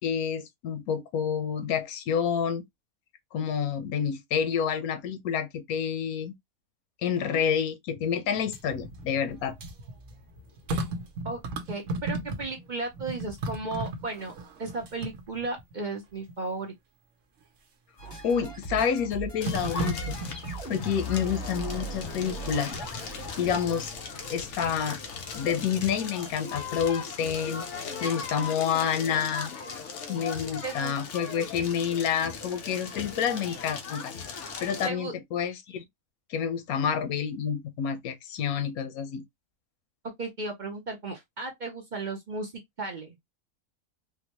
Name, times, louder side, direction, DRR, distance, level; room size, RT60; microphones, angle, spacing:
voice 1, 0.0-2.6 3.3-6.3 7.0-9.5 18.2-20.1 20.7-22.7 23.4-23.9 24.3-25.0 25.3-27.6 28.0-29.5 30.1-34.1 34.6-35.8 36.3-39.2, left 7 dB, 90° left, 1.1 m, -28 dB
sound 1, 8.4-12.7 12.9-15.7 16.3-16.4 18.0-18.5 19.4-21.0 22.6-23.0 23.9-24.6 25.0-26.0 26.3-26.4, right 1 dB, 65° right, 1.1 m, -36 dB
voice 2, 11.7-14.3 14.6-16.7 30.6-31.0 34.8-35.1 40.2-42.5 42.8-43.2, right 3 dB, 45° right, 0.7 m, -35 dB
sound 2, 18.0-24.3, equal, 35° left, 2.1 m, -39 dB
Crackle, 19.4-34.9, left 5 dB, 60° left, 1.0 m, -38 dB
3.8 x 2.2 x 2.9 m
omnidirectional pair, 1.5 m